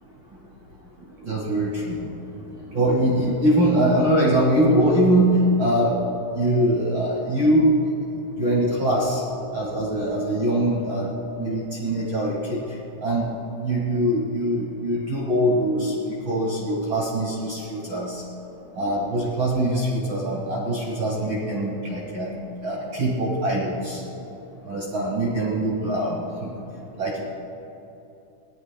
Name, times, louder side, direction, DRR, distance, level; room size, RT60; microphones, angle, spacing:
voice 1, 1.2-2.0 2.7-6.0 6.3-7.7 8.4-9.2 9.5-11.1 11.4-12.6 13.0-13.3 13.6-18.2 18.8-22.3 22.6-24.0 24.7-26.5 27.0-27.2, right 1 dB, 40° right, -5 dB, 2.0 m, -22 dB
24.5 x 18.0 x 2.2 m, 2.9 s
omnidirectional pair, 3.9 m